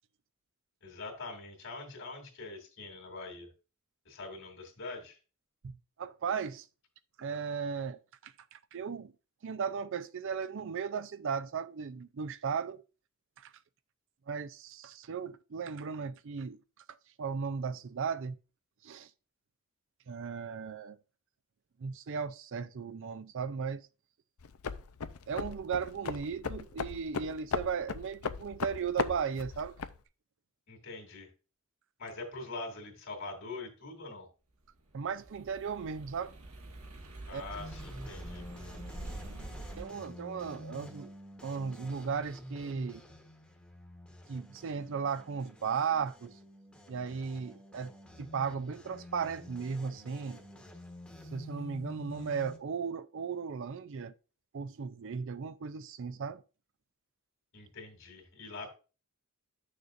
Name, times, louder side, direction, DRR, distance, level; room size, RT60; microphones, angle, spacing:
voice 1, 0.8-3.5 4.0-5.2 30.7-31.3 32.0-34.3 37.3-38.4 57.5-58.7, left 3 dB, 60° left, 2.4 m, -43 dB
voice 2, 5.6-6.7 7.2-9.1 9.4-12.8 13.4-13.5 14.3-16.6 16.9-18.4 18.8-19.1 20.1-21.0 21.8-23.8 25.3-29.8 34.9-36.3 37.3-37.4 39.8-41.1 41.4-43.0 44.3-46.3 46.9-47.9 48.2-50.4 51.3-54.1 54.5-56.4, right 6 dB, 60° right, 0.4 m, -36 dB
sound 1, 24.4-30.0, left 5 dB, 80° left, 0.6 m, -37 dB
sound 2, 34.9-39.8, right 1 dB, 75° right, 1.5 m, -45 dB
sound 3, 37.5-52.6, left 1 dB, 5° left, 1.1 m, -49 dB
10.5 x 6.6 x 2.5 m
head